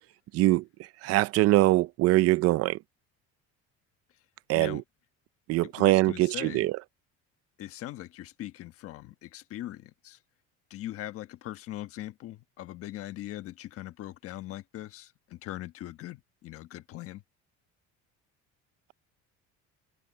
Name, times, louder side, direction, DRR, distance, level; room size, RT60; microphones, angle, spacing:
voice 1, 0.3-0.6 1.0-2.8 4.5-4.8 5.5-6.7, right 17 dB, 55° right, 0.6 m, -23 dB
voice 2, 5.6-6.6 7.6-10.2 10.7-17.2, left 14 dB, 50° left, 1.2 m, -41 dB
cardioid pair, 175°, 30 cm